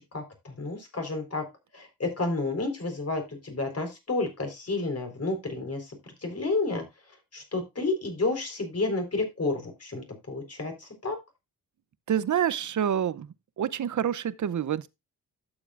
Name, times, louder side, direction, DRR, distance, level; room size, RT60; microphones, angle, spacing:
voice 1, 0.1-1.4 1.7-5.9 6.2-6.8 7.3-11.2, left 3 dB, 40° left, 4.3 m, -30 dB
voice 2, 12.1-13.3 13.6-14.9, right 9 dB, 50° right, 0.7 m, -27 dB
12.0 x 7.3 x 2.5 m
cardioid pair, 60°, 37 cm